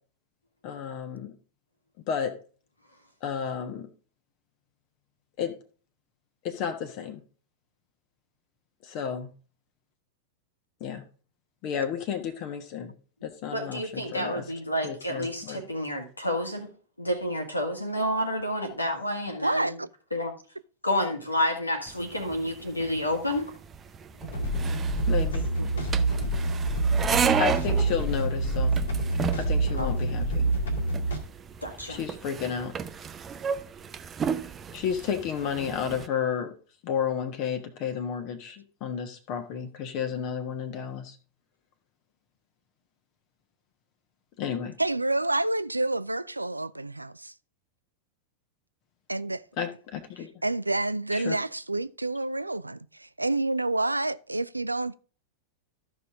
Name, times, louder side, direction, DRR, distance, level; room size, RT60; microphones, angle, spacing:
voice 1, 0.6-1.3 2.1-2.3 3.2-3.9 5.4-5.5 6.4-7.2 8.9-9.3 10.8-11.0 11.6-12.9 13.2-14.4 14.8-15.6 25.1-25.5 27.4-28.8 29.4-30.5 31.9-32.7 34.7-36.5 36.8-41.1 44.4-44.7 49.6-50.3 51.1-51.3, left 7 dB, 45° left, 1.2 m, -32 dB
voice 2, 13.5-16.7 17.0-19.8 20.1-20.3 20.8-23.5 25.6-25.8 29.7-29.9 31.6-32.0, left 1 dB, 85° left, 1.8 m, -29 dB
voice 3, 19.4-19.9 26.9-27.0 44.8-47.3 49.1-49.4 50.4-54.9, right 2 dB, 85° right, 0.3 m, -28 dB
sound 1, 21.9-36.1, right 7 dB, 20° right, 0.6 m, -33 dB
sound 2, 24.1-31.2, right 2 dB, 65° left, 1.8 m, -26 dB
13.5 x 5.6 x 3.6 m
figure-of-eight pair, 90°, 0 cm